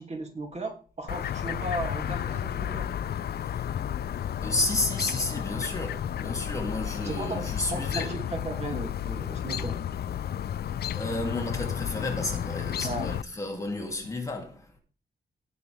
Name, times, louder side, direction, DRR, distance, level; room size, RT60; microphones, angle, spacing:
voice 1, 0.0-2.9 7.0-9.7 12.8-13.1, right 2 dB, 40° right, 2.7 m, -36 dB
Chirp tweet, 1.1-13.2, left 10 dB, 75° left, 0.5 m, -32 dB
voice 2, 4.4-8.1 10.9-14.8, left 2 dB, 20° left, 2.7 m, -32 dB
18.0 x 7.0 x 3.5 m
wide cardioid pair, 150°, 17 cm